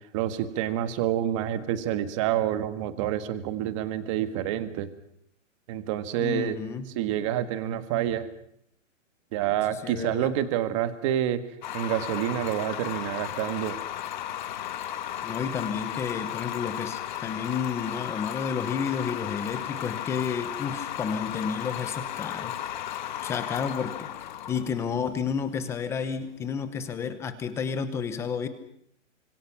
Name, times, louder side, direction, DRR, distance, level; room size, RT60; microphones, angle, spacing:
voice 1, 0.1-4.9 5.7-6.6 6.9-8.3 9.3-11.4 11.7-13.8, right 11 dB, 25° right, 11 dB, 1.6 m, -28 dB
voice 2, 6.2-6.9 9.5-10.3 15.2-22.6 23.2-24.1 24.5-28.5, left 6 dB, 5° left, 11 dB, 0.9 m, -31 dB
sound 1, 11.6-26.6, left 11 dB, 35° left, 1.4 m, -35 dB
28.5 x 26.0 x 6.0 m, 0.70 s
hypercardioid pair, 170°, 39 cm